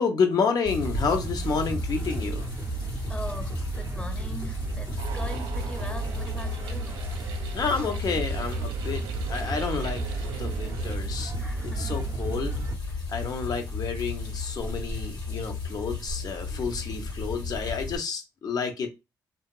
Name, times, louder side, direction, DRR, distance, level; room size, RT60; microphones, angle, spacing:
voice 1, 0.0-2.5 7.5-9.0 9.3-11.3 11.6-12.6 13.1-18.9, left 5 dB, 60° left, 0.8 m, -29 dB
sound 1, 0.7-18.0, left 4 dB, 80° left, 1.2 m, -35 dB
sound 2, 0.8-12.8, right 5 dB, 40° right, 0.5 m, -33 dB
voice 2, 2.8-7.0 7.5-7.8 11.4-12.0, left 1 dB, 15° left, 0.7 m, -41 dB
sound 3, 5.0-11.0, right 7 dB, 90° right, 0.4 m, -43 dB
2.9 x 2.4 x 2.3 m
cardioid pair, 65°, 7 cm